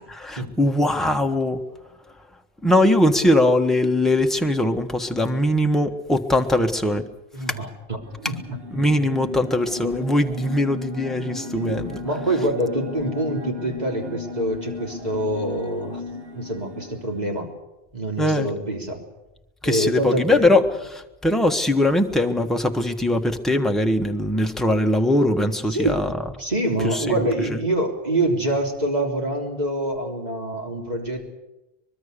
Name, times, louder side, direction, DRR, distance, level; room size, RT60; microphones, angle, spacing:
voice 1, 0.0-1.6 2.6-7.0 8.7-12.0 18.2-18.5 19.6-26.1 26.9-27.2 27.5-27.6, left 1 dB, ahead, 4 dB, 1.4 m, -21 dB
voice 2, 7.3-8.0 8.2-8.4 11.5-16.0 16.4-17.5 17.9-19.0 19.6-20.7 25.7-26.1 26.4-31.3, right 1 dB, 40° right, 2 dB, 3.8 m, -25 dB
sound 1, 8.0-17.2, left 3 dB, 70° right, 2.3 m, -36 dB
24.5 x 21.5 x 6.8 m, 1.0 s
omnidirectional pair, 1.0 m